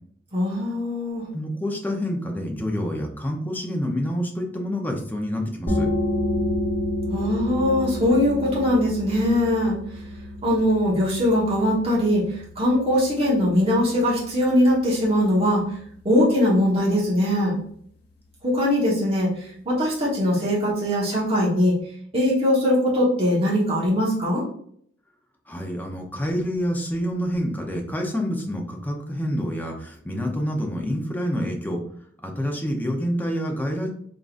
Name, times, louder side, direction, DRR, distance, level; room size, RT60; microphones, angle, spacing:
voice 1, 0.3-1.2 7.1-9.8 10.4-15.6 16.0-17.6 18.4-21.7 22.1-24.4, left 1 dB, 30° right, -6 dB, 1.3 m, -21 dB
voice 2, 1.3-5.9 25.5-31.8 32.2-33.9, equal, 10° left, 1 dB, 0.7 m, -27 dB
sound 1, 5.7-17.0, left 1 dB, 60° left, 1.0 m, -30 dB
3.8 x 3.7 x 2.5 m, 0.64 s
head